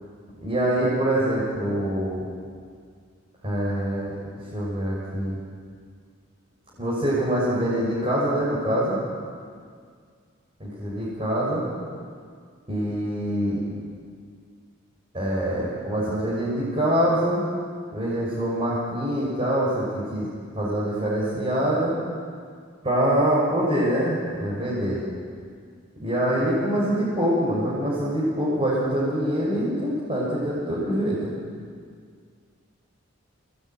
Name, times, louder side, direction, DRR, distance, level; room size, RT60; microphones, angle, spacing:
voice 1, 0.4-2.2 3.4-4.1 4.5-5.4 6.8-9.0 10.6-11.7 12.7-13.6 15.1-17.4 17.9-20.3 20.5-21.9 22.8-25.0 26.0-31.3, right 1 dB, 25° right, -8 dB, 6.4 m, -24 dB
29.0 x 19.0 x 9.5 m, 2.1 s
head